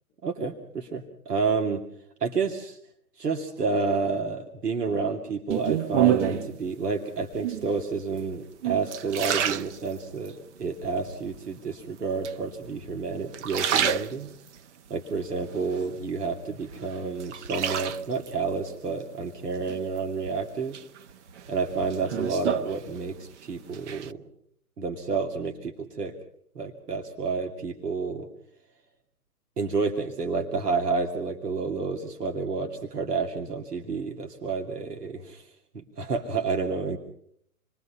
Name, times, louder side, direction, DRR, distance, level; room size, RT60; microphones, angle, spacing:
voice 1, 0.2-1.8 2.2-2.8 3.2-14.3 14.9-20.8 21.5-24.2 24.8-26.1 26.5-28.3 29.6-37.0, right 4 dB, 85° right, 3 dB, 2.7 m, -30 dB
sound 1, 5.5-6.6 7.3-7.8 8.4-10.3 10.8-11.4 12.2-12.9 13.2-14.6 15.1-16.3 16.7-18.3 19.7-20.3 20.7-23.3 23.6-24.1, right 9 dB, 50° right, 1.1 m, -29 dB
28.5 x 21.5 x 5.7 m, 0.67 s
hypercardioid pair, 130°, 46 cm